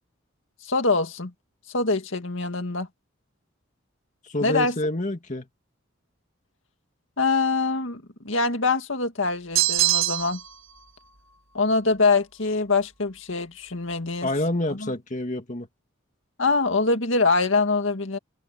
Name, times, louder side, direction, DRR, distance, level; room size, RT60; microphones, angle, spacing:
voice 1, 0.6-1.3 1.7-2.9 4.4-4.7 7.2-10.4 11.5-14.3 14.8-14.9 16.4-18.2, left 3 dB, 70° left, 2.1 m, -24 dB
voice 2, 4.2-5.5 14.2-15.7, left 1 dB, 40° left, 2.3 m, -27 dB
sound 1, 9.5-10.5, right 14 dB, 90° right, 1.8 m, -23 dB
head